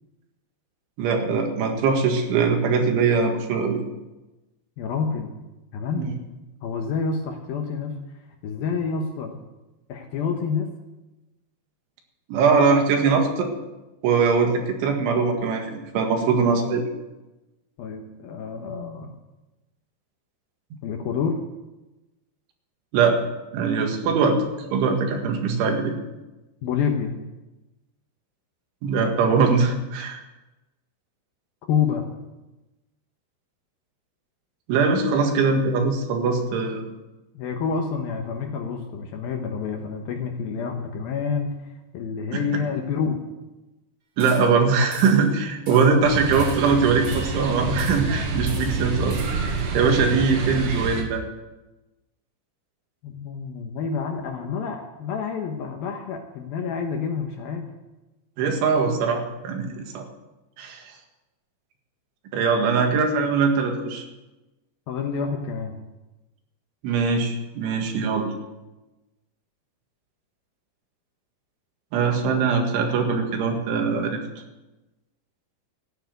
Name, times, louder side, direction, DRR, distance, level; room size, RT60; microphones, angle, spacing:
voice 1, 1.0-3.8 6.0-6.1 12.3-13.5 14.0-16.8 22.9-23.2 23.5-25.9 28.8-30.2 34.7-36.9 42.3-42.4 44.2-51.2 58.4-60.1 60.6-60.8 62.3-64.0 66.8-68.3 71.9-74.2, right 5 dB, 80° right, 3 dB, 4.3 m, -22 dB
voice 2, 4.8-5.4 5.7-6.1 6.6-8.0 8.4-9.4 9.9-10.7 17.8-19.1 20.8-21.4 26.6-27.1 31.7-32.0 37.3-41.5 41.9-43.2 45.7-46.3 53.0-57.7 64.9-65.7, left 6 dB, 70° left, 3 dB, 2.5 m, -28 dB
sound 1, 44.2-44.6 44.9-45.3 45.7-46.0 46.3-47.4 47.8-48.2 48.5-49.5, right 3 dB, 40° right, 1.5 m, -42 dB
sound 2, 46.0-51.0, right 4 dB, 65° right, 3.7 m, -28 dB
14.0 x 10.0 x 8.0 m, 1.0 s
omnidirectional pair, 5.3 m